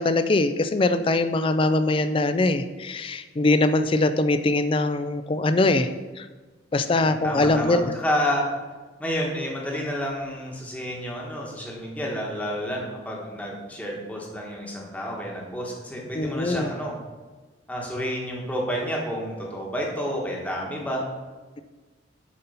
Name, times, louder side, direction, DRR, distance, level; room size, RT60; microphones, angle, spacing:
voice 1, 0.0-6.3 6.7-7.9 16.1-16.7, left 2 dB, 30° left, 11 dB, 0.4 m, -22 dB
voice 2, 6.9-8.4 9.0-17.0 17.7-21.1, equal, 10° left, -2 dB, 1.2 m, -30 dB
7.5 x 4.1 x 5.6 m, 1.3 s
head